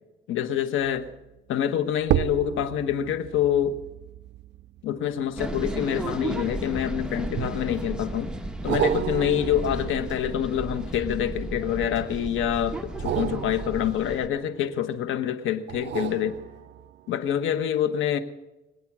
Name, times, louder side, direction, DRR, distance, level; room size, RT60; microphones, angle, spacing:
voice 1, 0.3-1.1 1.5-3.8 4.8-8.3 8.6-16.4 17.1-18.2, left 10 dB, 85° left, 1.3 m, -26 dB
sound 1, 0.8-1.1 2.0-6.7 7.4-8.0 8.7-11.7 12.9-14.9 15.7-17.1 17.6-17.7, right 13 dB, 60° right, 0.4 m, -32 dB
sound 2, 5.4-14.3, right 1 dB, 5° right, 1.2 m, -34 dB
23.5 x 8.6 x 6.2 m
cardioid pair, 90°, 20 cm